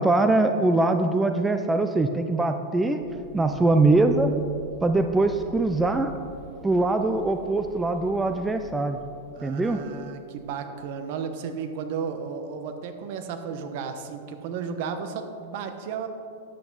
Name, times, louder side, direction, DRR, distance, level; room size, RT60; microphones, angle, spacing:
voice 1, 0.0-3.0 3.3-4.3 4.8-6.1 6.6-9.0 9.4-9.8, right 2 dB, 10° right, 7 dB, 0.4 m, -22 dB
sound 1, 3.0-10.4, right 1 dB, 40° right, 1.3 m, -47 dB
voice 2, 3.3-3.8 9.3-16.1, right 6 dB, 55° right, 8 dB, 0.9 m, -34 dB
9.9 x 8.4 x 4.0 m, 2.4 s
supercardioid pair, 140°, 0 cm